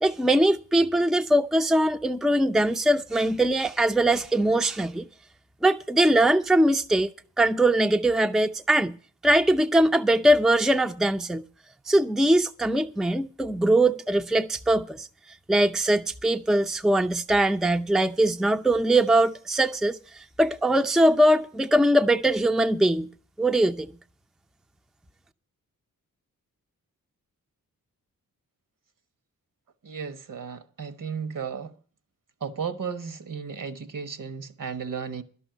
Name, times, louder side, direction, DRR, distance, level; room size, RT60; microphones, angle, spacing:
voice 1, 0.0-5.1 5.6-7.1 7.4-9.0 9.2-11.4 11.9-15.1 15.5-23.1 23.4-23.9, right 1 dB, ahead, 0.5 m, -21 dB
voice 2, 29.8-31.7 32.4-35.2, right 6 dB, 65° right, 1.2 m, -34 dB
11.5 x 6.3 x 9.2 m
cardioid pair, 40°, 35 cm